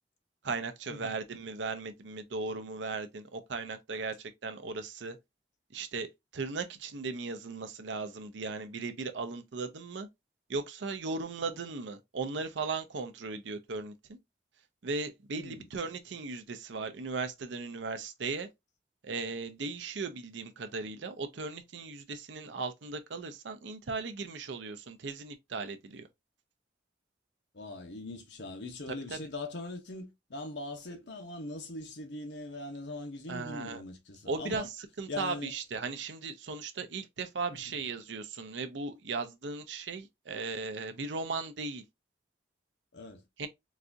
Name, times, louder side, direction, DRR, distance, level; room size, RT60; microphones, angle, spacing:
voice 1, 0.4-5.2 5.7-10.1 10.5-14.2 14.8-18.5 19.0-26.1 29.1-29.2 33.3-33.8 34.3-41.8 43.4-43.5, right 4 dB, 85° right, 0.6 m, -37 dB
voice 2, 15.4-15.7 27.5-34.7 35.1-35.5 37.5-37.7 42.9-43.2, left 2 dB, 75° left, 0.8 m, -41 dB
4.0 x 2.4 x 2.5 m
head